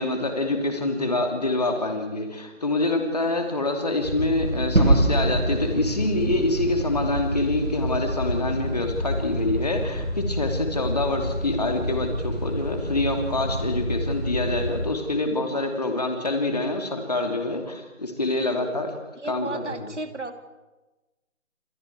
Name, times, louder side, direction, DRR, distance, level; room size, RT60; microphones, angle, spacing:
voice 1, 0.0-18.9 19.2-19.9, left 2 dB, 30° left, 4 dB, 2.7 m, -26 dB
sound 1, 4.0-14.8, equal, 5° right, 1.7 m, -29 dB
Gunshot gunfire / Fireworks / Boom, 4.7-9.5, right 2 dB, 90° right, 3.9 m, -26 dB
voice 2, 18.3-18.8 19.1-20.3, right 3 dB, 60° right, 7 dB, 2.5 m, -35 dB
29.0 x 26.0 x 4.7 m, 1.1 s
figure-of-eight pair, 170°, 40 cm